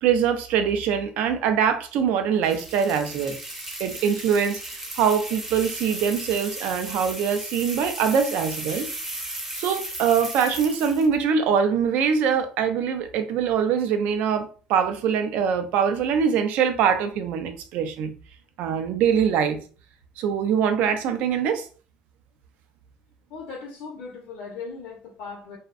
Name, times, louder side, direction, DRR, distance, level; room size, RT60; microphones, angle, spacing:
voice 1, 0.0-3.4 3.8-8.9 9.6-18.1 18.6-19.6 20.2-21.7, right 7 dB, 70° right, 0.4 m, -23 dB
sound 1, 2.4-11.1, right 1 dB, 10° right, 0.5 m, -35 dB
voice 2, 23.3-25.6, left 5 dB, 75° left, 0.5 m, -38 dB
2.5 x 2.1 x 2.3 m
cardioid pair, 150°, 3 cm